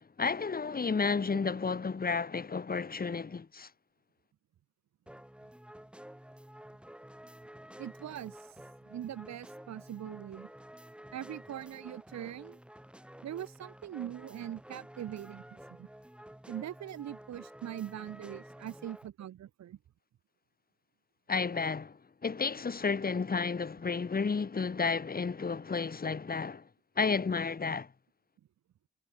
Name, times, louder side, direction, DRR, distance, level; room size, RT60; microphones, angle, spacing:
voice 1, 0.2-3.7 21.3-26.6 27.0-27.9, left 5 dB, 30° left, 2.8 m, -32 dB
sound 1, 5.1-19.1, equal, 5° right, 5.4 m, -51 dB
voice 2, 7.8-10.5 11.1-12.6 13.2-15.9 16.5-19.8, right 11 dB, 65° right, 1.5 m, -42 dB
cardioid pair, 90°, 30 cm